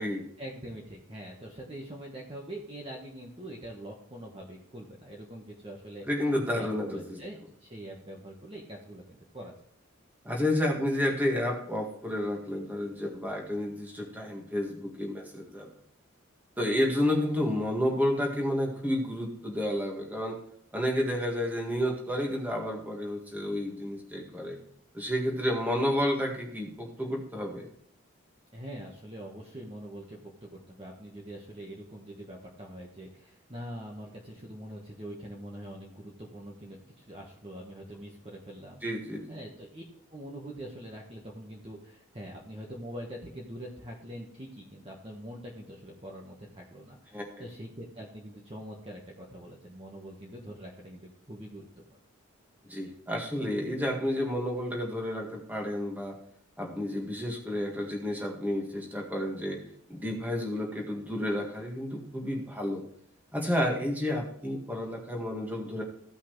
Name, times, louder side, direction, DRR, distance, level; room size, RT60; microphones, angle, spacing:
voice 1, 0.4-6.1 6.5-9.6 28.5-38.8 39.3-52.0, right 1 dB, 25° right, -2 dB, 1.2 m, -44 dB
voice 2, 6.1-7.2 10.2-15.7 16.6-20.4 20.7-24.6 24.9-27.7 38.8-39.3 47.1-47.4 52.7-56.1 56.6-59.6 59.9-62.8 63.3-65.8, left 1 dB, 10° right, 0 dB, 1.7 m, -30 dB
15.5 x 5.6 x 3.1 m, 0.66 s
head